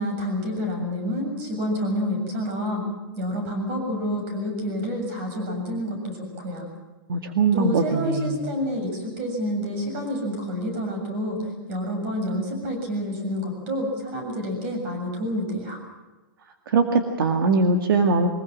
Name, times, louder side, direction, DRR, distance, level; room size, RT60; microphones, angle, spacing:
voice 1, 0.0-2.8 3.2-6.7 7.5-11.4 11.7-15.8, equal, 35° right, 4 dB, 7.4 m, -28 dB
voice 2, 7.1-8.4 16.7-18.3, right 3 dB, 70° right, 5 dB, 2.1 m, -21 dB
23.5 x 21.0 x 7.4 m, 1.2 s
supercardioid pair, 170°, 12 cm